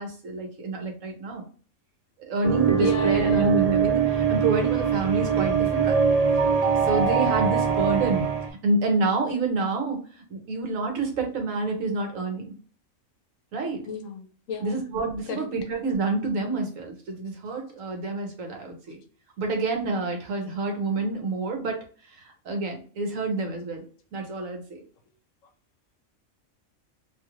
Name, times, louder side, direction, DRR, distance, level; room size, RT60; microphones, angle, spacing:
voice 1, 0.0-1.4 2.3-6.0 6.8-8.2 8.6-10.0 10.3-12.5 13.5-13.9 14.6-19.0 19.4-23.8 24.1-24.8, right 3 dB, 70° right, 1.2 m, -28 dB
sound 1, 2.4-8.5, right 6 dB, 90° right, 0.3 m, -23 dB
voice 2, 2.8-3.5 13.9-14.8 15.3-15.5, left 5 dB, 70° left, 0.9 m, -33 dB
2.8 x 2.4 x 2.9 m
omnidirectional pair, 1.5 m